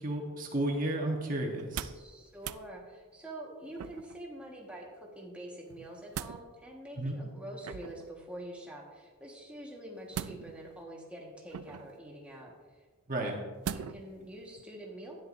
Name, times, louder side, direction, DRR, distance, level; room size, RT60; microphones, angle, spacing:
voice 1, 0.0-1.9 7.0-7.2 13.1-13.4, right 1 dB, 40° right, 0 dB, 1.2 m, -32 dB
sound 1, 1.5-2.1 2.4-2.6 3.8-4.2 5.7-6.4 7.6-8.1 10.1-10.7 11.5-12.0 13.6-14.1 14.6-14.7, right 8 dB, 80° right, 0.4 m, -40 dB
voice 2, 1.9-12.8 13.2-13.4 13.7-15.2, right 1 dB, 5° right, -2 dB, 1.4 m, -46 dB
12.5 x 10.0 x 2.6 m, 1.4 s
head